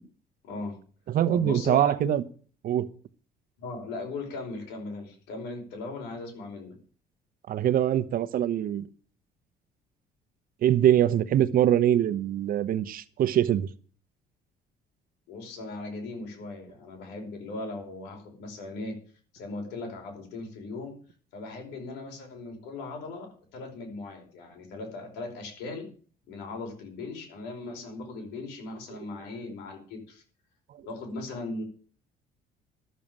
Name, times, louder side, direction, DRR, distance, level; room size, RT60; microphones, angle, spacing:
voice 1, 0.4-0.8 1.3-2.2 3.6-6.7 15.3-18.9 19.3-20.9 21.3-25.9 26.3-30.2 30.8-31.6, left 3 dB, 90° left, 2 dB, 5.1 m, -38 dB
voice 2, 1.1-2.2 2.6-2.9 7.5-8.9 10.6-13.7, right 11 dB, 60° right, 14 dB, 1.0 m, -23 dB
12.5 x 7.1 x 7.5 m, 0.43 s
cardioid pair, 110°, 17 cm